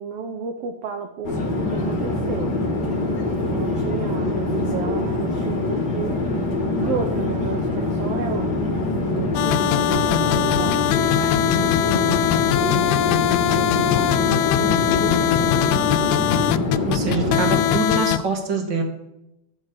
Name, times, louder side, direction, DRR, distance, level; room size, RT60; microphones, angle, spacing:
voice 1, 0.0-2.6 3.0-6.2 6.8-8.6 9.0-10.8 11.5-16.2 17.0-17.7, right 7 dB, 70° right, 5 dB, 1.7 m, -32 dB
Conversation / Chatter / Fixed-wing aircraft airplane, 1.2-17.9, left 2 dB, 40° left, 1.9 m, -24 dB
sound 1, 9.4-18.2, left 13 dB, 85° left, 1.9 m, -21 dB
voice 2, 16.8-18.8, right 4 dB, 40° right, 2 dB, 2.2 m, -25 dB
12.5 x 7.8 x 5.8 m, 0.87 s
omnidirectional pair, 3.4 m